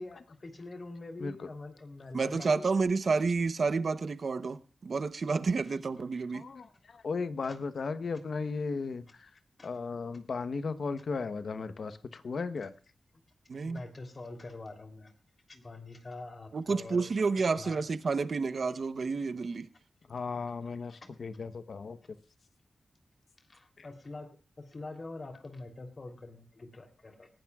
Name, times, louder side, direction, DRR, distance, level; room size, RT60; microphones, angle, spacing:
voice 1, 0.0-2.7 5.7-5.8 7.4-7.6 9.6-9.7 13.6-15.1 15.5-17.1 17.5-17.9 20.9-21.0 23.5-24.3 24.6-27.3, left 2 dB, 45° left, 6 dB, 3.2 m, -45 dB
voice 2, 2.1-6.4 13.5-13.8 16.5-19.7, right 4 dB, 65° right, 13 dB, 0.8 m, -30 dB
voice 3, 6.3-9.3 9.6-12.7 20.1-22.0 23.8-23.9, left 4 dB, 70° left, 12 dB, 1.0 m, -36 dB
19.5 x 15.5 x 2.4 m, 0.35 s
cardioid pair, 65°, 0 cm